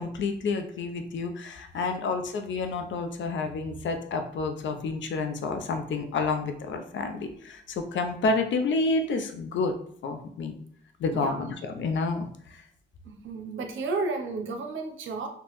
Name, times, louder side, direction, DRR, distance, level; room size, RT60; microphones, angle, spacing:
voice 1, 0.0-9.7 10.0-10.6 11.0-12.6, left 3 dB, 70° left, 6 dB, 0.5 m, -29 dB
voice 2, 13.1-15.3, right 3 dB, 75° right, 4 dB, 0.6 m, -32 dB
3.0 x 2.1 x 3.0 m, 0.67 s
supercardioid pair, 45°, 20 cm